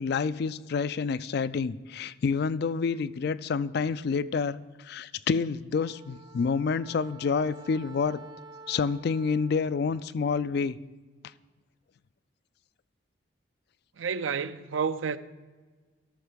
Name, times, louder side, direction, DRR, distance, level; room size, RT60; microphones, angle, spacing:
voice 1, 0.0-8.2 8.7-10.8, left 5 dB, 55° left, 0.3 m, -28 dB
Wind instrument woodwind instrument, 5.7-10.2, right 3 dB, 20° right, 0.4 m, -50 dB
voice 2, 14.0-15.2, right 6 dB, 80° right, 0.5 m, -30 dB
12.5 x 6.4 x 5.1 m
head